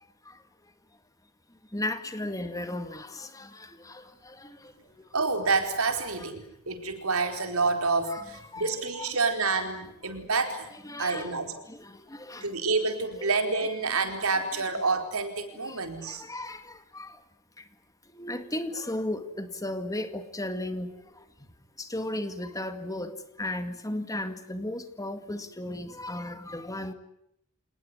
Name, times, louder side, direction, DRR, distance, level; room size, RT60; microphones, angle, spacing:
voice 1, 1.7-4.7 5.0-5.1 6.1-6.3 8.0-8.2 8.5-9.2 10.7-11.3 11.7-12.5 13.2-13.3 15.6-15.8 16.0-17.2 18.2-20.9 21.8-26.9, left 1 dB, 15° left, 9 dB, 2.0 m, -35 dB
voice 2, 5.1-10.7 11.0-11.5 12.4-16.2, right 4 dB, 70° right, 6 dB, 4.5 m, -28 dB
27.5 x 20.0 x 9.8 m, 0.76 s
head